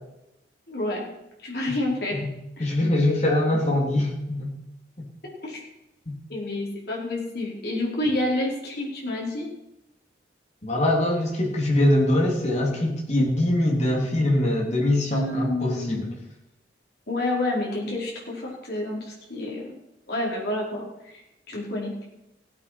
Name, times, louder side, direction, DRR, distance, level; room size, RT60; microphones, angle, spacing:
voice 1, 0.7-1.1 1.4-2.2 2.6-2.7 5.4-5.6 6.3-9.5 15.1-16.1 17.1-19.7 20.1-21.2 21.5-22.1, left 1 dB, 55° left, -3 dB, 4.9 m, -29 dB
voice 2, 2.6-4.5 5.0-5.1 6.1-6.2 10.6-16.1, left 1 dB, 35° left, -2 dB, 3.4 m, -23 dB
17.0 x 8.6 x 6.1 m, 0.90 s
head